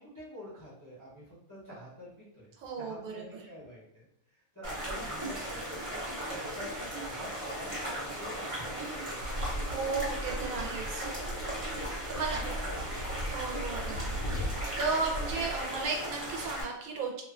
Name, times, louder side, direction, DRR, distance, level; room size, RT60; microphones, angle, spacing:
voice 1, 0.0-4.1 4.3-9.8 11.5-11.7 12.1-13.8, equal, 20° left, -9 dB, 0.6 m, -47 dB
voice 2, 2.6-3.5 9.7-11.1 12.1-12.4 13.3-14.5 14.8-17.2, right 4 dB, 80° right, 0 dB, 1.0 m, -35 dB
sound 1, 4.6-16.6, right 1 dB, 35° right, 0.6 m, -37 dB
sound 2, 9.2-15.6, equal, 65° left, 0.9 m, -38 dB
2.6 x 2.2 x 2.4 m, 0.75 s
omnidirectional pair, 1.5 m